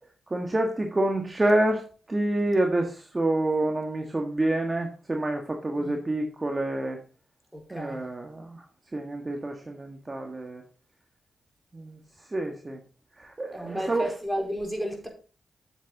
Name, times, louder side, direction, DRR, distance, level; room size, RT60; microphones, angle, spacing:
voice 1, 0.3-7.0 7.7-10.6 11.7-12.8 13.1-14.1, right 1 dB, 30° right, 1.7 m, -28 dB
voice 2, 7.5-8.0 13.5-15.1, equal, ahead, 4.5 m, -33 dB
8.9 x 7.4 x 4.0 m
supercardioid pair, 40°, 0 cm